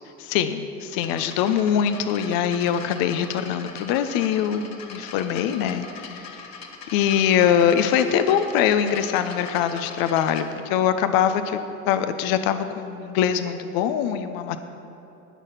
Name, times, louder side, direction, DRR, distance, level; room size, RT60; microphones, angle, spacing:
voice 1, 0.2-6.5 6.9-11.6 11.9-14.6, left 9 dB, 55° left, 10 dB, 0.8 m, -23 dB
sound 1, 0.9-10.5, left 5 dB, 40° left, 1.6 m, -41 dB
18.5 x 6.5 x 5.7 m, 2.9 s
hypercardioid pair, 75°, 42 cm